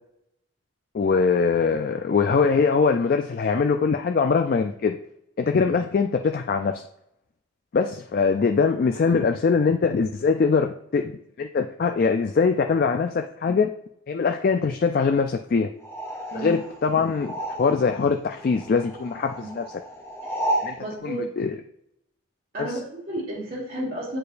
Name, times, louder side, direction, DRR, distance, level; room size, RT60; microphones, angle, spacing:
voice 1, 0.9-5.0 5.4-6.8 7.7-11.1 11.4-13.7 14.1-15.7 16.3-17.3 17.6-19.6 20.6-20.7 21.0-21.5 22.6-22.7, left 5 dB, 45° left, 5 dB, 0.3 m, -22 dB
sound 1, 15.8-18.1 18.3-20.8, right 1 dB, 10° left, 0.8 m, -32 dB
voice 2, 20.8-21.3 22.5-24.2, right 1 dB, 45° right, -4 dB, 1.6 m, -32 dB
8.3 x 4.4 x 2.5 m, 0.77 s
head